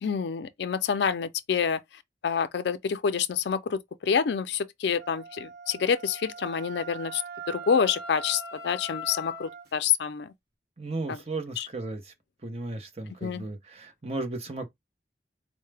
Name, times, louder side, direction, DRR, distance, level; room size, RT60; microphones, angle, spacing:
voice 1, 0.0-1.8 2.2-7.2 7.5-10.3 11.1-11.2 11.6-11.7 13.2-13.4, left 7 dB, 75° left, 0.4 m, -27 dB
Wind instrument woodwind instrument, 5.0-9.7, right 1 dB, 60° right, 1.0 m, -41 dB
voice 2, 10.8-12.1 12.4-14.7, right 2 dB, 35° right, 0.8 m, -35 dB
4.5 x 2.1 x 3.3 m
head